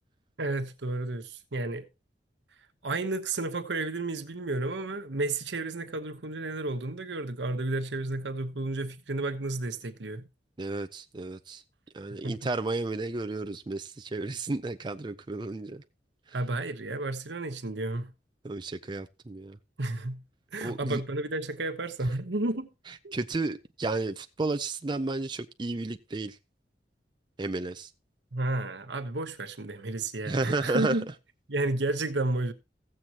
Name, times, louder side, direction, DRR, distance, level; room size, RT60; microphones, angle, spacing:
voice 1, 0.4-1.9 2.8-10.2 12.2-12.5 16.3-18.1 19.8-20.2 20.5-22.7 23.0-23.2 28.3-31.0 31.5-32.5, right 2 dB, 85° right, 1.1 m, -32 dB
voice 2, 10.6-11.6 11.9-15.8 18.4-19.6 20.6-21.0 23.1-26.4 27.4-27.9 30.2-31.0, right 2 dB, 25° right, 0.5 m, -32 dB
15.5 x 7.7 x 2.9 m
head